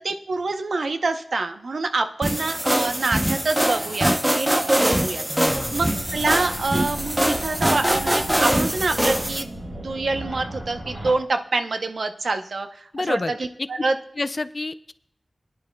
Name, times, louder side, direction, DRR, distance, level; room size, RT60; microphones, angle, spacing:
voice 1, 0.0-13.2 13.7-13.9, right 3 dB, 75° right, 7 dB, 0.7 m, -26 dB
sound 1, 2.2-9.4, right 1 dB, 15° right, 0.7 m, -23 dB
voice 2, 5.3-5.8 12.9-13.7 14.2-14.9, left 2 dB, 40° left, 13 dB, 0.4 m, -29 dB
sound 2, 5.4-11.1, right 1 dB, 55° right, 4.1 m, -35 dB
21.0 x 10.5 x 2.2 m, 0.72 s
wide cardioid pair, 90°, 0 cm